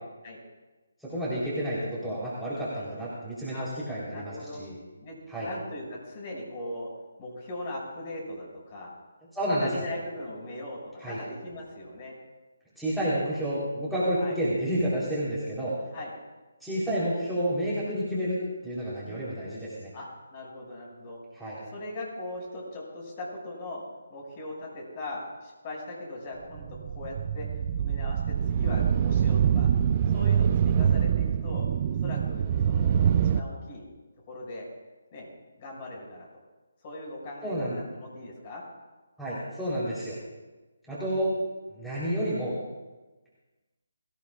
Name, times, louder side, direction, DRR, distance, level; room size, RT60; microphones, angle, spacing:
voice 1, 1.0-4.7 5.3-5.5 9.3-9.7 11.0-11.2 12.8-15.7 16.6-18.4 18.6-19.9 21.3-21.6 37.4-37.8 39.2-40.2 40.9-41.3 41.7-42.5, equal, ahead, -11 dB, 3.8 m, -30 dB
voice 2, 4.1-4.6 5.0-5.1 5.4-6.9 7.2-8.9 9.6-12.1 14.2-14.4 15.9-16.1 19.0-19.3 19.9-21.2 21.7-23.8 24.1-27.5 27.7-28.2 28.5-29.7 30.1-31.7 32.0-33.8 34.3-34.7 35.1-35.3 35.6-36.3 36.8-37.7 37.9-38.6, left 1 dB, 30° left, -2 dB, 6.3 m, -39 dB
sound 1, 26.5-33.4, right 8 dB, 35° right, 0.5 m, -25 dB
24.0 x 16.0 x 2.5 m, 1.2 s
figure-of-eight pair, 155°, 0 cm